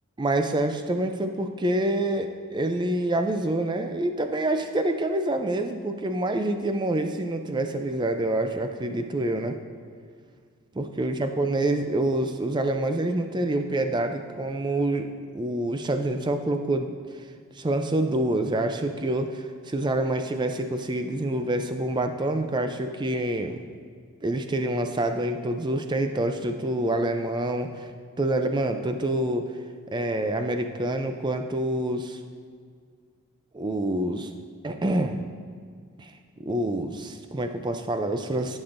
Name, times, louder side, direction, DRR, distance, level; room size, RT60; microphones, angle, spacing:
voice 1, 0.2-9.6 10.7-17.0 17.6-23.6 24.2-27.9 28.2-29.5 29.9-32.2 33.5-34.3 34.6-35.2 36.0-36.1 36.4-38.6, right 1 dB, 20° right, 7 dB, 0.4 m, -27 dB
13.5 x 6.1 x 2.6 m, 2.1 s
head